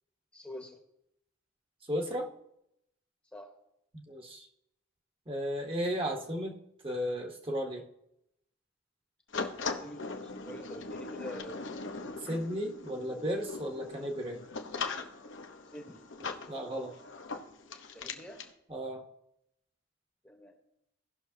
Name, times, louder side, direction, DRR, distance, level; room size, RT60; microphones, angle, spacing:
voice 1, 0.3-0.8 3.3-3.5 9.6-11.8 12.9-13.1 15.7-16.0 17.9-18.4 20.2-20.6, equal, 5° left, 2 dB, 1.0 m, -46 dB
voice 2, 1.9-2.3 3.9-4.5 5.3-6.6 6.8-7.8 12.2-14.4 16.5-16.9 18.7-19.0, equal, 25° right, 2 dB, 1.0 m, -34 dB
sound 1, 9.3-18.5, left 4 dB, 65° left, 0.9 m, -40 dB
17.5 x 6.1 x 2.7 m, 0.80 s
head